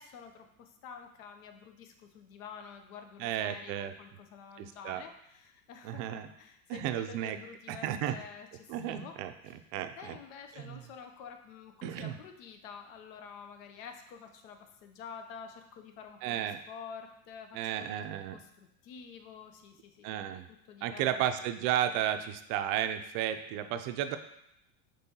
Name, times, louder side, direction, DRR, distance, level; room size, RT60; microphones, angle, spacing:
voice 1, 0.0-9.2 10.0-21.3, left 6 dB, 70° left, 6 dB, 0.8 m, -49 dB
voice 2, 3.2-3.9 4.6-5.0 5.8-6.3 6.7-7.4 7.7-8.2 8.7-9.3 9.7-10.2 10.5-10.8 11.8-12.1 16.2-16.6 17.5-18.4 20.0-20.5 20.8-24.2, right 11 dB, 50° right, 9 dB, 0.5 m, -33 dB
5.3 x 3.2 x 2.9 m, 0.79 s
supercardioid pair, 110°, 43 cm